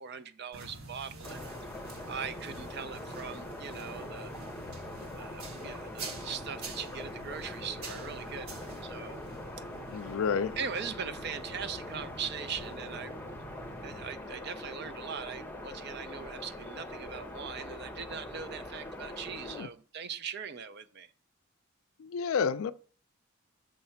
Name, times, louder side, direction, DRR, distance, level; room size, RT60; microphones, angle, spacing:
voice 1, 0.0-1.5 2.1-4.3 5.2-9.2 10.6-13.2 13.8-21.1, right 6 dB, 50° right, 0.5 m, -40 dB
sound 1, 0.5-14.1, right 2 dB, 90° right, 1.6 m, -47 dB
sound 2, 1.2-19.6, left 1 dB, 10° left, 0.9 m, -43 dB
voice 2, 9.9-10.6 19.4-19.7 22.0-22.7, left 6 dB, 75° left, 0.4 m, -30 dB
6.5 x 3.2 x 5.7 m
head